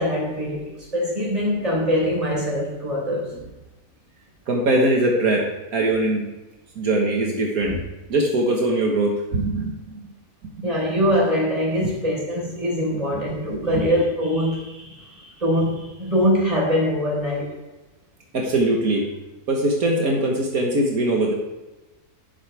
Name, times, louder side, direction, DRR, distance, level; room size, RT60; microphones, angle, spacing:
voice 1, 0.0-3.3 7.6-7.7 10.6-17.5, equal, 25° right, -3 dB, 4.4 m, -23 dB
voice 2, 4.5-5.5 5.7-6.3 6.8-7.8 8.1-10.0 11.8-11.9 13.5-13.8 18.3-19.0 19.5-21.3, right 2 dB, 75° right, -1 dB, 2.0 m, -21 dB
12.0 x 11.0 x 3.5 m, 1.1 s
omnidirectional pair, 1.5 m